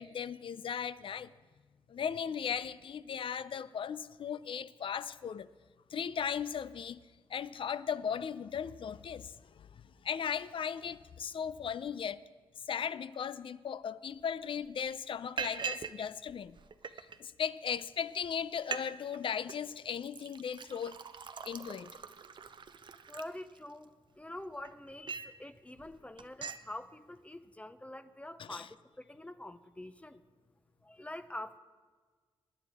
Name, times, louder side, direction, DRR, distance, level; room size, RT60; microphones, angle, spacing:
voice 1, 0.0-1.3 1.9-5.5 5.9-7.0 7.3-12.2 12.7-16.6 17.2-21.0 21.4-21.9 28.4-28.7, left 7 dB, 60° left, 0.4 m, -37 dB
Liquid, 14.2-14.3 14.6-14.9 15.4-16.0 16.3-17.2 17.8-17.9 18.2-18.3 18.6-18.9 19.1-19.6 20.0-23.8 24.4-25.4 25.8-25.9 26.2-26.6, right 6 dB, 50° right, 0.6 m, -42 dB
voice 2, 23.1-30.2 30.8-31.6, left 1 dB, 15° left, 0.6 m, -46 dB
20.5 x 9.7 x 3.5 m
cardioid pair, 65°, 10 cm